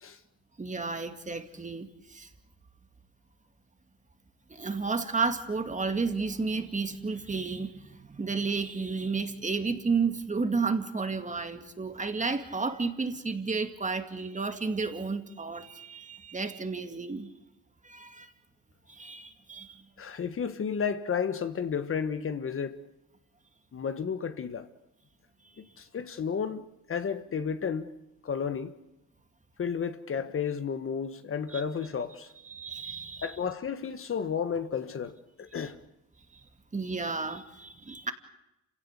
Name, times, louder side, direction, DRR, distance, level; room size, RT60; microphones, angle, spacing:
voice 1, 0.6-2.3 4.5-17.3 17.8-18.3 18.9-19.8 31.5-31.6 32.4-33.3 36.3-36.4 36.7-38.1, right 4 dB, 25° right, 2.4 m, -32 dB
voice 2, 20.0-22.8 23.7-24.7 25.6-27.9 28.2-28.7 29.6-32.3 33.2-35.8, left 6 dB, 45° left, 1.5 m, -32 dB
28.0 x 17.0 x 8.3 m
cardioid pair, 90°, 30 cm